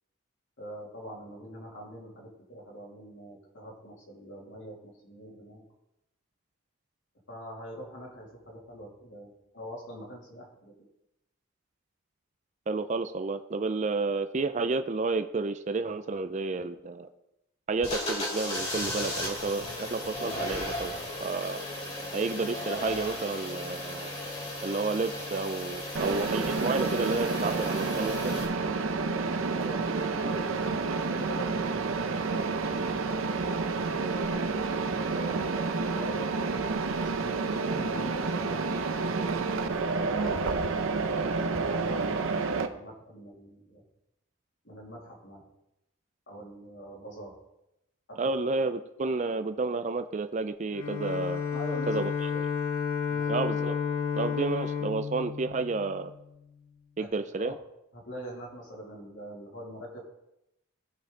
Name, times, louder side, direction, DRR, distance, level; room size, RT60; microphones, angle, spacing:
voice 1, 0.6-5.6 7.3-10.7 29.5-32.9 33.2-33.4 33.9-36.2 36.9-40.4 41.2-43.8 44.6-45.4 46.3-47.3 48.1-48.4 51.5-52.4 53.1-53.5 57.0-57.1 57.4-57.5 57.9-60.0, right 1 dB, 60° left, -2 dB, 2.6 m, -43 dB
voice 2, 12.7-17.1 17.7-21.6 22.1-24.1 24.6-28.4 48.2-51.4 51.9-52.1 53.3-53.8 54.1-56.1 57.0-57.6, right 3 dB, 35° right, 9 dB, 0.4 m, -31 dB
sound 1, 17.8-28.4, left 1 dB, 30° left, 2.5 m, -35 dB
Mechanisms, 25.9-42.7, right 4 dB, 70° right, 0.7 m, -29 dB
Bowed string instrument, 50.7-56.3, left 7 dB, 75° left, 0.8 m, -31 dB
15.5 x 5.5 x 3.8 m, 0.87 s
head